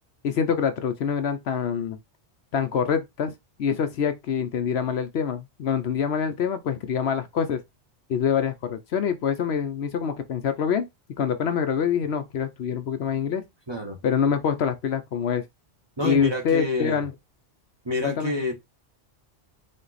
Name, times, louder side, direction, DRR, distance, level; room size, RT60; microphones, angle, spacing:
voice 1, 0.2-2.0 2.5-3.3 3.6-7.6 8.1-10.9 11.2-13.4 14.0-15.4 16.0-17.1 18.0-18.3, left 7 dB, 65° left, 0.9 m, -25 dB
voice 2, 13.7-14.0 16.0-17.0 17.8-18.5, left 2 dB, 25° right, 1.2 m, -27 dB
5.2 x 2.4 x 4.0 m
omnidirectional pair, 1.2 m